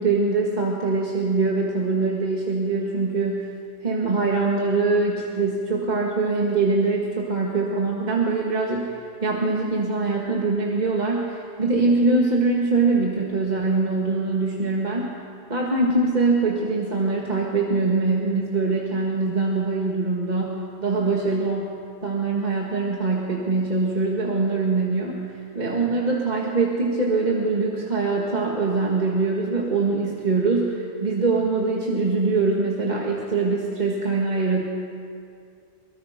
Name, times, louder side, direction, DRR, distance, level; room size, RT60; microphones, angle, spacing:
voice 1, 0.0-3.5 3.8-15.1 15.5-21.7 22.0-34.6, right 3 dB, 40° right, -2 dB, 1.9 m, -23 dB
23.5 x 21.5 x 5.1 m, 2.4 s
omnidirectional pair, 1.1 m